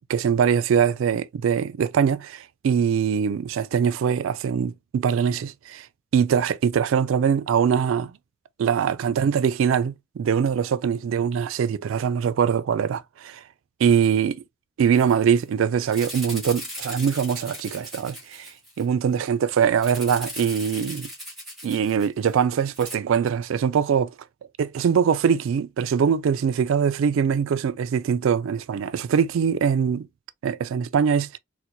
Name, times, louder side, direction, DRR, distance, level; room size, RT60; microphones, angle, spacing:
voice 1, 0.1-5.9 6.1-8.1 8.6-13.4 13.8-14.4 14.8-18.5 18.8-21.1 21.6-24.1 24.6-30.1 30.4-31.4, right 7 dB, 65° right, 0.3 m, -22 dB
Rattle (instrument), 15.0-15.1 15.4-15.5 15.9-18.8 19.8-22.4 22.7-23.0, equal, ahead, 1.8 m, -38 dB
4.3 x 2.1 x 2.5 m
head